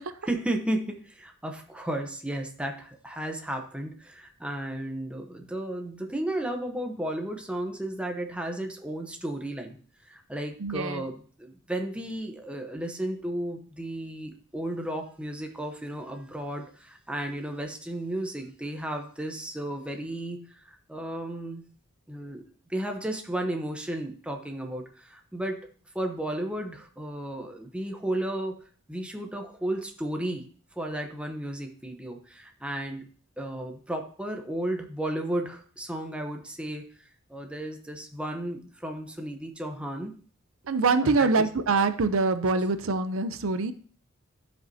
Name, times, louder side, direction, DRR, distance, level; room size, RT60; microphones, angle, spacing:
voice 1, 0.2-9.8 10.0-21.6 22.1-25.7 25.9-28.5 28.9-30.5 30.8-33.1 33.4-36.9 37.3-40.1 41.0-41.5, right 1 dB, 5° right, 3 dB, 0.9 m, -34 dB
voice 2, 10.6-11.0 40.6-43.7, right 3 dB, 70° right, 11 dB, 0.6 m, -24 dB
12.5 x 5.3 x 2.8 m, 0.43 s
head